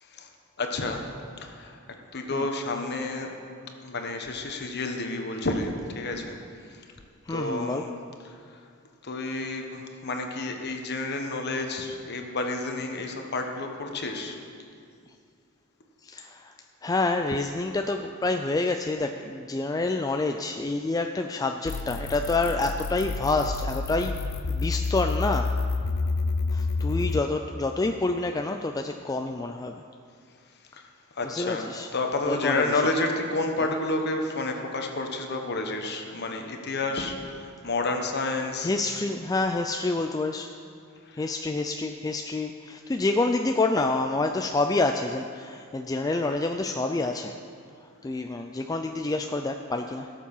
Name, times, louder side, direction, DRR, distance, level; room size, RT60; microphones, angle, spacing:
voice 1, 0.6-1.0 1.4-1.8 2.1-3.3 3.8-6.3 6.7-6.8 7.3-7.9 8.2-8.6 9.0-14.4 30.7-30.8 31.2-38.7 41.1-41.2, left 2 dB, 50° left, 3 dB, 1.2 m, -30 dB
voice 2, 7.3-7.9 16.0-16.5 16.8-25.4 26.5-29.8 31.2-31.9 32.3-32.8 33.6-33.7 38.6-40.5 41.1-47.4 48.0-50.1, left 2 dB, 15° left, 5 dB, 0.3 m, -28 dB
sound 1, 21.7-27.2, left 3 dB, 70° left, 0.5 m, -29 dB
17.5 x 7.3 x 5.5 m, 2.3 s
head